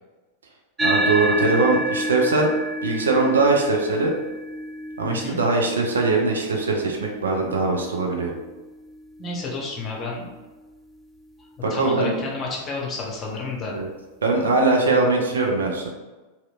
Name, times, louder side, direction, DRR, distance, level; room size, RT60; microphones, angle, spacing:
sound 1, 0.8-9.5, right 1 dB, 10° right, 0.3 m, -29 dB
voice 1, 0.8-2.5 2.8-4.1 5.0-8.3 11.6-12.1 13.7-13.9 14.2-15.9, right 3 dB, 70° right, 0 dB, 0.5 m, -21 dB
voice 2, 5.1-5.4 9.2-10.3 11.7-13.8, left 3 dB, 25° left, -2 dB, 0.8 m, -30 dB
3.0 x 2.8 x 2.3 m, 1.2 s
figure-of-eight pair, 90°, 0 cm